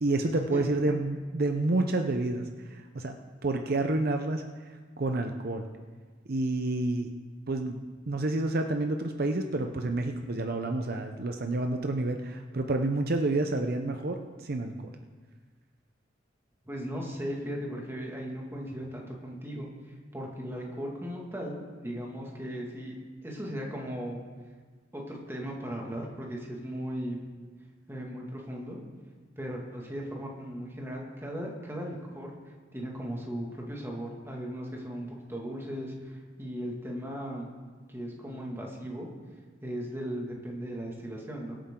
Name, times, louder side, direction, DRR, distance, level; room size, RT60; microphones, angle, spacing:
voice 1, 0.0-3.2 3.4-5.7 6.3-7.1 7.5-14.9, right 2 dB, 55° right, 5 dB, 0.7 m, -29 dB
voice 2, 16.7-23.0 23.2-24.3 24.9-27.2 27.9-28.8 29.4-37.5 37.9-39.1 39.6-41.6, equal, 15° right, -2 dB, 2.1 m, -37 dB
22.5 x 8.6 x 3.8 m, 1.5 s
head